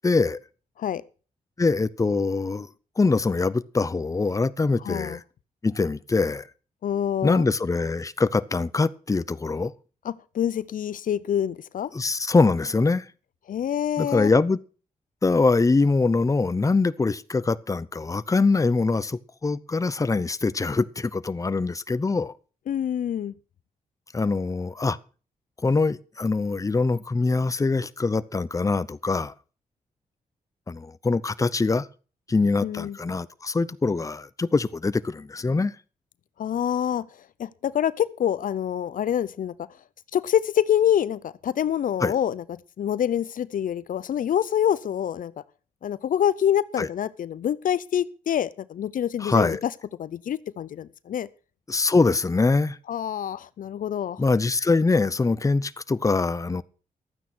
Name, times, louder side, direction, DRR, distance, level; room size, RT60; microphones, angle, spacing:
voice 1, 0.0-0.4 1.6-2.7 3.0-5.2 5.6-6.5 7.2-9.7 11.9-13.1 14.0-14.6 15.2-22.3 24.1-25.0 25.6-29.3 30.7-31.9 32.3-35.7 42.0-42.1 46.8-46.9 49.2-49.6 51.7-52.8 54.2-56.6, left 3 dB, 25° left, 0.7 m, -23 dB
voice 2, 4.8-5.2 6.8-7.5 10.0-11.9 13.5-14.3 22.7-23.3 32.6-33.0 36.4-37.1 37.4-39.5 40.1-42.4 42.8-45.3 45.8-49.6 50.0-51.3 52.9-54.2, left 10 dB, 70° left, 0.6 m, -26 dB
12.5 x 9.2 x 6.1 m
cardioid pair, 70°, 14 cm